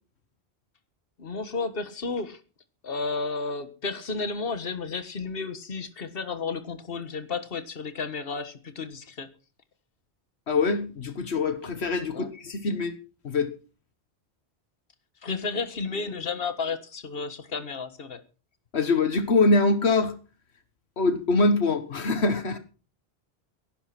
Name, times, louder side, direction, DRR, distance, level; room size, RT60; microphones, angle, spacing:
voice 1, 1.2-2.4 2.8-9.3 12.1-12.3 15.2-18.2, left 4 dB, 60° left, 11 dB, 1.7 m, -32 dB
voice 2, 10.5-12.9 13.2-13.5 18.7-20.1 21.0-22.6, left 3 dB, 80° left, 10 dB, 1.6 m, -24 dB
16.5 x 11.5 x 5.9 m, 0.37 s
omnidirectional pair, 1.1 m